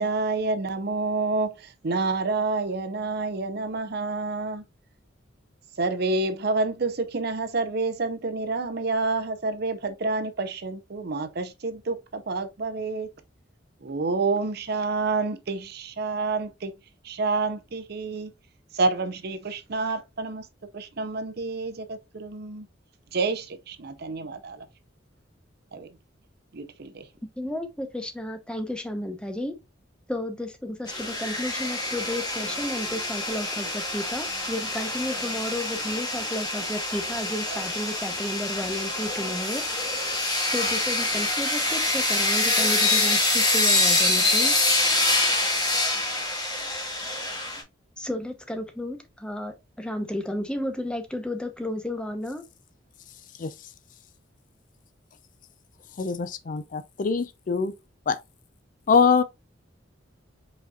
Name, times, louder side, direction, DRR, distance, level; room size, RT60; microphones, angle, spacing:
voice 1, 0.0-1.5 1.8-4.6 5.8-13.1 13.8-16.7 17.0-18.3 18.7-20.4 20.7-22.7 23.1-24.6 25.7-25.9 26.5-27.0, right 3 dB, 55° right, 0.7 m, -28 dB
voice 2, 27.4-29.5 30.1-39.9 40.4-44.5 48.0-52.4, left 1 dB, 5° left, 0.8 m, -32 dB
sound 1, 30.9-47.6, left 2 dB, 20° left, 1.8 m, -25 dB
voice 3, 56.0-57.7 58.1-58.2 58.9-59.2, left 5 dB, 45° left, 0.4 m, -23 dB
5.0 x 4.1 x 2.4 m
head